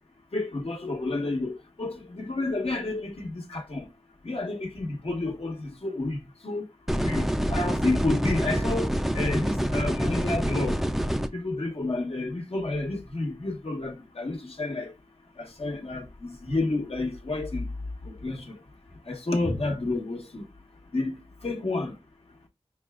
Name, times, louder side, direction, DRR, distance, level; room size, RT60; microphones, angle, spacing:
voice 1, 0.3-3.9 4.2-6.2 6.4-6.6 7.0-10.8 11.3-14.9 15.4-17.7 18.1-18.5 19.1-20.4 20.9-21.2 21.4-21.9, left 2 dB, 65° left, 1.2 m, -30 dB
sound 1, 6.9-11.3, equal, ahead, 0.4 m, -26 dB
5.5 x 2.3 x 3.5 m
wide cardioid pair, 60°, 11 cm